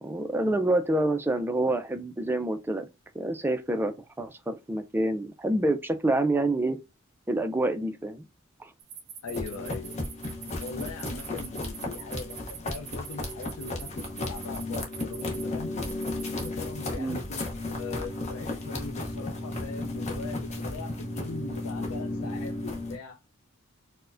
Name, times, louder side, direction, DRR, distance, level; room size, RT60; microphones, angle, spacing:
voice 1, 0.0-2.9 3.1-6.8 7.3-8.3 8.6-8.7 17.0-17.2, right 1 dB, 10° right, 0.3 m, -27 dB
sound 1, 8.8-15.4 15.8-16.5, right 8 dB, 50° right, 0.6 m, -43 dB
voice 2, 9.2-10.0 10.6-15.8 16.2-23.2, left 4 dB, 75° left, 0.4 m, -41 dB
sound 2, 9.3-23.0, left 2 dB, 30° left, 0.7 m, -34 dB
4.4 x 2.1 x 2.4 m
head